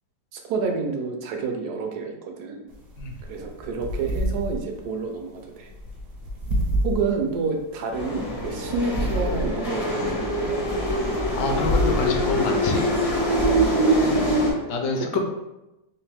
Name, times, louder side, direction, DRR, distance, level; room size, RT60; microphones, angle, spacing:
voice 1, 0.3-2.7 3.3-5.7 6.8-10.6 14.6-14.7 15.1-15.2, right 4 dB, 70° right, 3 dB, 1.1 m, -29 dB
sound 1, 2.7-13.2, equal, 50° right, 0.7 m, -30 dB
sound 2, 7.9-14.5, equal, 40° left, 0.5 m, -24 dB
voice 2, 11.3-13.0 14.7-15.2, left 3 dB, 75° left, 2 dB, 1.2 m, -27 dB
3.5 x 2.9 x 3.3 m, 0.96 s
omnidirectional pair, 1.9 m